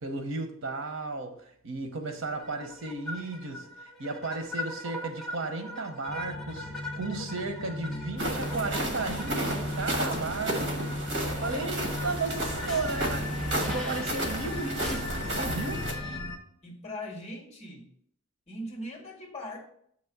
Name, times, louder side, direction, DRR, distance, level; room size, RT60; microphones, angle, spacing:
voice 1, 0.0-6.7 7.0-13.3 13.6-15.9, right 3 dB, 80° right, 1.0 m, -34 dB
sound 1, 2.4-16.2, left 1 dB, ahead, 1.0 m, -42 dB
sound 2, 6.1-16.4, left 1 dB, 65° left, 0.9 m, -37 dB
sound 3, 8.2-15.9, right 1 dB, 65° right, 1.4 m, -32 dB
voice 2, 11.2-11.7 16.6-17.9 18.5-19.7, left 1 dB, 35° left, 1.6 m, -40 dB
6.7 x 3.1 x 6.0 m
head